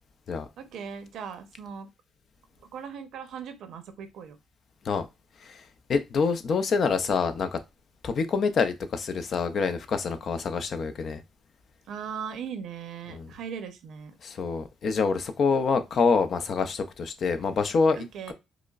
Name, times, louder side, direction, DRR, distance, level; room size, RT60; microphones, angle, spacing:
voice 1, 0.6-1.9 2.6-4.4 11.9-14.1 18.0-18.3, right 7 dB, 75° right, 0.7 m, -39 dB
voice 2, 5.9-7.6 8.0-11.2 13.1-13.3 14.2-18.0 18.3-18.4, left 5 dB, 55° left, 0.5 m, -26 dB
4.8 x 2.1 x 2.3 m
cardioid pair, 90°, 0 cm